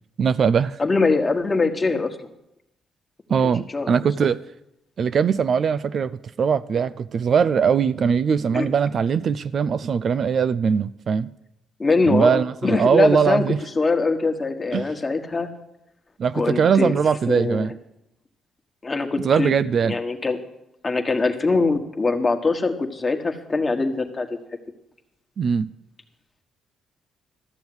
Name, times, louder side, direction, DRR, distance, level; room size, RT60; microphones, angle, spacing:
voice 1, 0.2-0.8 3.3-4.4 5.0-11.3 12.1-13.6 14.7-14.8 16.2-17.7 19.2-20.0 25.4-25.7, right 6 dB, 55° right, 0.4 m, -21 dB
voice 2, 0.8-2.2 3.4-3.9 8.5-8.7 11.8-15.5 16.3-16.9 17.3-17.7 18.8-19.5 19.8-20.4 20.8-24.3, left 3 dB, 25° left, 1.5 m, -22 dB
13.5 x 7.0 x 7.9 m
cardioid pair, 90°, 0 cm